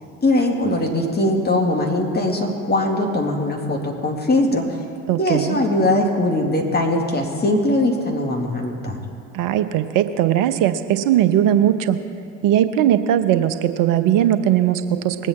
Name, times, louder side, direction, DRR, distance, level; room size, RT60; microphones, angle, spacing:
voice 1, 0.2-4.8 5.2-9.0, left 1 dB, 25° left, 1 dB, 2.3 m, -21 dB
voice 2, 5.1-5.6 9.3-12.0 12.4-15.3, right 11 dB, 60° right, 11 dB, 0.9 m, -19 dB
20.5 x 8.4 x 4.3 m, 2.4 s
hypercardioid pair, 60°, 38 cm